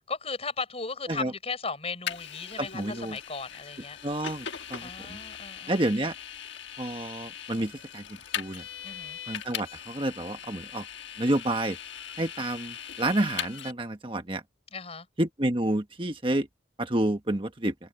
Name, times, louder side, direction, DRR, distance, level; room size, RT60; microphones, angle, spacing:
voice 1, 0.1-4.0 4.8-5.8 8.8-9.2 14.7-15.1, left 4 dB, 35° left, 5.8 m, -36 dB
Vehicle, 2.1-13.7, left 9 dB, 80° left, 1.4 m, -40 dB
voice 2, 2.6-3.2 4.0-5.2 5.7-6.1 6.8-8.0 8.3-8.6 9.3-10.8 11.2-11.8 12.2-14.4 15.2-16.5 16.8-17.7, right 1 dB, 30° right, 1.3 m, -29 dB
head